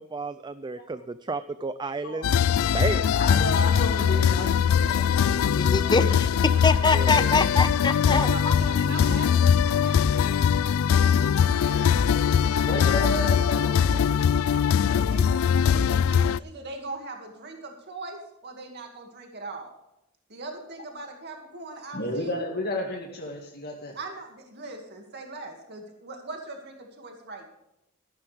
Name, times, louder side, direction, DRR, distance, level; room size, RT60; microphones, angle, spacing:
voice 1, 0.0-2.4 2.7-3.1 6.9-7.3, right 3 dB, 20° right, 13 dB, 0.4 m, -32 dB
sound 1, 2.2-16.4, left 7 dB, 80° left, 0.3 m, -22 dB
voice 2, 3.2-5.9 12.6-14.1 14.4-15.3 21.9-23.9, left 1 dB, 50° left, -2 dB, 2.0 m, -33 dB
voice 3, 5.6-8.5, left 3 dB, 20° left, 12 dB, 0.7 m, -24 dB
voice 4, 8.1-10.5 10.9-13.2 15.1-15.4 15.7-19.7 20.3-22.5 23.9-27.5, right 2 dB, 55° right, 2 dB, 2.2 m, -40 dB
14.0 x 11.5 x 3.5 m, 0.87 s
head